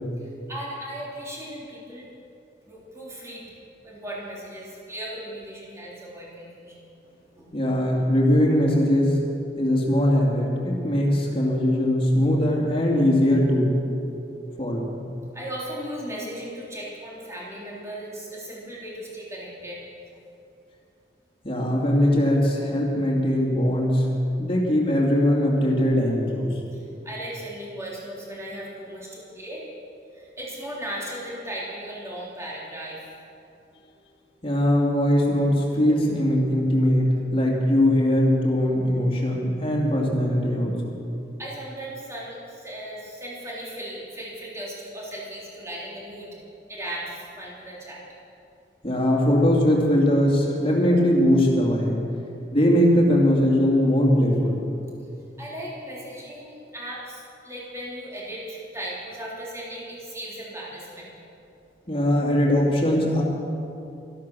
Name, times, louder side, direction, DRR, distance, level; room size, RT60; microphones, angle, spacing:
voice 1, 0.2-2.1 2.7-3.5 3.8-6.9 7.4-7.5 15.3-19.8 26.7-29.6 30.1-33.0 41.4-46.3 46.7-48.0 55.4-61.1, right 1 dB, 15° right, -5 dB, 3.3 m, -37 dB
voice 2, 7.5-9.2 9.6-13.7 14.6-14.9 21.4-24.1 24.4-26.5 34.4-40.7 48.8-52.0 52.5-54.6 61.9-63.2, equal, 30° left, -2 dB, 2.6 m, -21 dB
13.5 x 12.0 x 6.3 m, 2.7 s
head